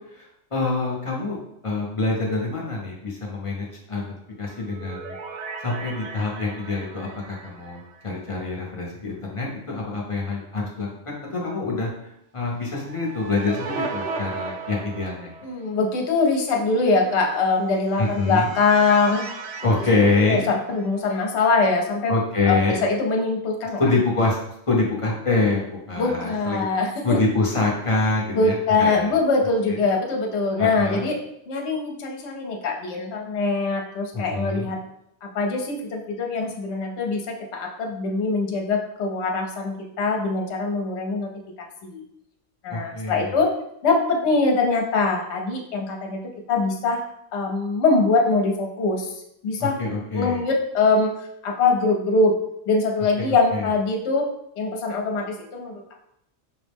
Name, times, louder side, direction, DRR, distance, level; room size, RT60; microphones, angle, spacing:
voice 1, 0.1-1.4 1.6-11.9 12.3-15.3 18.0-18.5 19.6-20.5 22.1-22.8 23.8-24.4 24.7-26.6 27.0-29.2 29.7-29.8 30.6-31.1 34.1-34.7 42.7-43.4 49.6-50.4 53.2-53.7, left 3 dB, 35° left, -2 dB, 0.6 m, -25 dB
sound 1, 4.4-8.7 9.0-9.1 12.6-15.7 17.8-21.2, right 4 dB, 70° right, 0.8 m, -36 dB
voice 2, 15.4-19.3 20.3-22.1 22.4-23.9 26.0-27.2 28.3-31.2 31.5-34.8 35.2-41.3 41.6-42.0 42.6-43.5 43.8-46.2 46.5-47.0 47.3-49.1 49.4-49.8 50.1-52.3 52.7-54.3 54.6-55.8, left 3 dB, 60° left, 1 dB, 0.9 m, -23 dB
5.3 x 2.0 x 3.4 m, 0.78 s
omnidirectional pair, 1.4 m